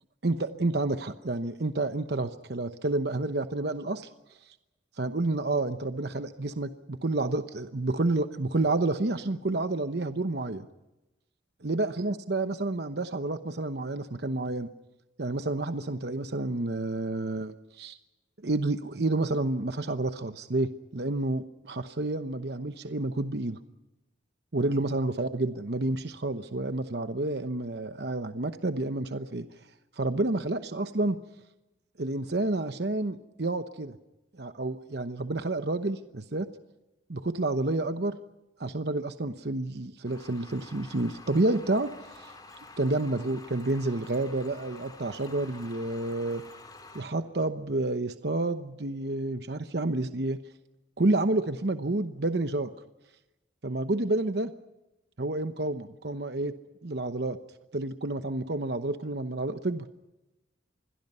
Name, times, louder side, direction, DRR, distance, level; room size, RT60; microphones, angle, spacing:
voice 1, 0.2-4.1 5.0-10.7 11.6-14.7 15.2-18.0 18.4-23.6 24.5-29.5 30.0-31.2 32.0-34.0 34.4-36.5 37.1-38.2 38.6-42.3 42.8-46.4 46.9-50.4 51.0-52.7 53.6-54.5 55.2-56.5 56.8-57.4 57.7-59.9, right 2 dB, 60° right, 9 dB, 0.9 m, -29 dB
sound 1, 40.1-47.0, left 3 dB, 20° left, 3.2 m, -49 dB
27.0 x 22.0 x 5.6 m, 0.99 s
head